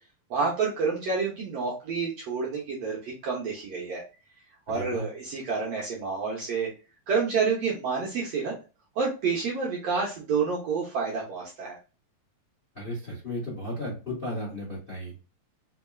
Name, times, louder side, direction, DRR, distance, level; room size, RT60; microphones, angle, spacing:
voice 1, 0.3-4.0 4.7-6.7 7.1-8.5 8.9-11.8, right 5 dB, 70° right, -3 dB, 1.6 m, -29 dB
voice 2, 4.7-5.0 12.7-15.1, left 1 dB, 45° left, -6 dB, 0.7 m, -34 dB
4.8 x 3.4 x 2.3 m, 0.33 s
omnidirectional pair, 4.0 m